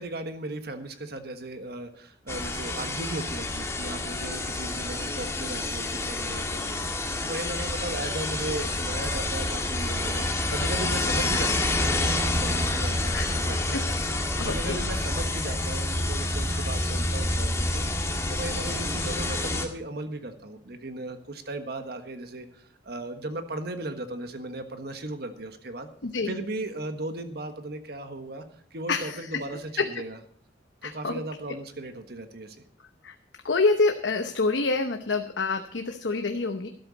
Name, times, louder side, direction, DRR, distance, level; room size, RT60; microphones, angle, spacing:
voice 1, 0.0-13.8 14.4-17.9 18.3-25.9 26.3-28.4 28.7-30.2 30.8-32.6, right 2 dB, 60° right, 8 dB, 1.4 m, -36 dB
sound 1, 2.3-19.7, left 2 dB, 15° left, 1.7 m, -28 dB
voice 2, 14.4-14.8 26.0-26.3 28.9-29.4 29.8-29.9 30.8-31.2 33.0-33.1 33.4-36.7, left 3 dB, 80° left, 6 dB, 0.9 m, -27 dB
12.5 x 12.0 x 4.1 m, 0.63 s
head